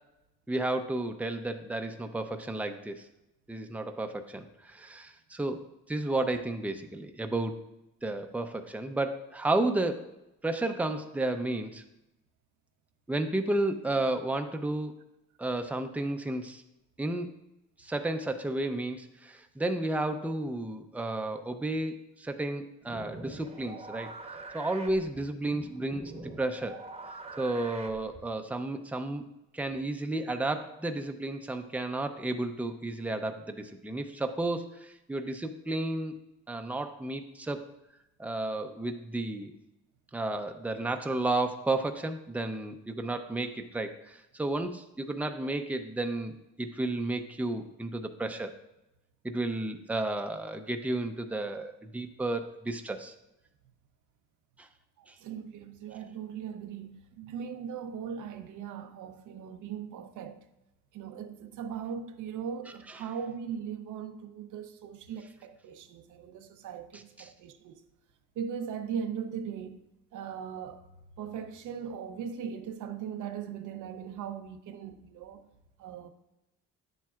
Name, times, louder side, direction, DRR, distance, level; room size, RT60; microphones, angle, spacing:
voice 1, 0.5-3.0 3.5-5.6 5.9-7.6 8.0-10.1 10.4-11.8 13.1-14.9 15.4-16.6 17.0-17.3 17.8-24.1 24.5-26.0 26.4-26.8 27.4-29.2 29.5-36.1 36.5-37.7 38.2-39.5 40.1-48.5 49.2-53.1 54.6-54.7 55.1-55.2 66.9-67.3, right 2 dB, 5° right, 0.6 m, -32 dB
sound 1, 22.8-28.4, right 2 dB, 20° right, 1.0 m, -45 dB
voice 2, 55.0-60.4 60.9-67.8 68.4-69.8 70.1-70.8 71.2-75.5 75.8-76.1, right 7 dB, 80° right, 0.8 m, -39 dB
10.0 x 7.4 x 2.4 m
cardioid pair, 90°, 30 cm